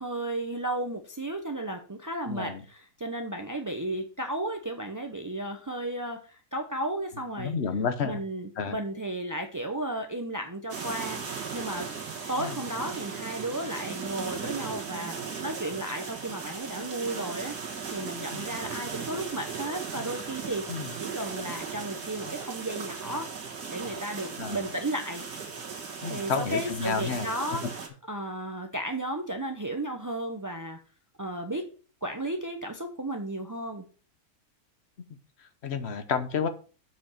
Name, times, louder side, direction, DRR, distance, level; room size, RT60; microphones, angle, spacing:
voice 1, 0.0-7.6 8.0-11.9 12.3-17.5 17.9-20.6 21.0-23.3 23.7-25.2 26.1-27.7 28.1-30.8 31.2-31.6 32.0-33.9, right 1 dB, 30° right, 4 dB, 0.3 m, -34 dB
voice 2, 2.3-2.6 7.4-8.2 8.6-8.8 12.4-12.6 18.3-18.5 20.7-20.9 24.4-24.7 26.0-27.3 35.4-36.5, left 6 dB, 50° left, 9 dB, 1.0 m, -31 dB
sound 1, 10.7-27.9, right 5 dB, 75° right, 2.1 m, -37 dB
7.7 x 5.1 x 5.7 m, 0.39 s
omnidirectional pair, 1.7 m